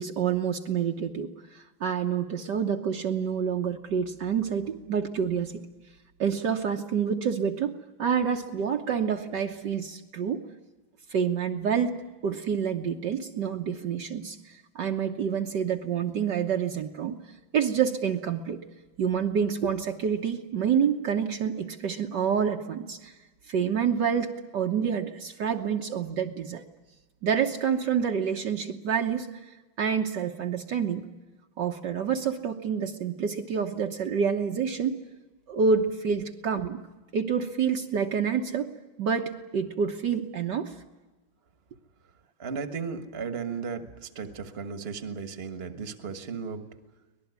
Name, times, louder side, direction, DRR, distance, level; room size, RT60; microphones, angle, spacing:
voice 1, 0.0-5.6 6.2-7.7 8.0-10.4 11.1-14.4 14.7-17.2 17.5-18.6 19.0-23.1 23.5-26.6 27.2-29.4 29.8-31.1 31.6-35.0 35.5-36.8 37.1-38.7 39.0-40.7, right 7 dB, 60° right, 3 dB, 1.6 m, -28 dB
voice 2, 42.4-46.6, right 5 dB, 35° right, 9 dB, 1.6 m, -35 dB
24.5 x 19.0 x 9.5 m, 1.2 s
omnidirectional pair, 2.2 m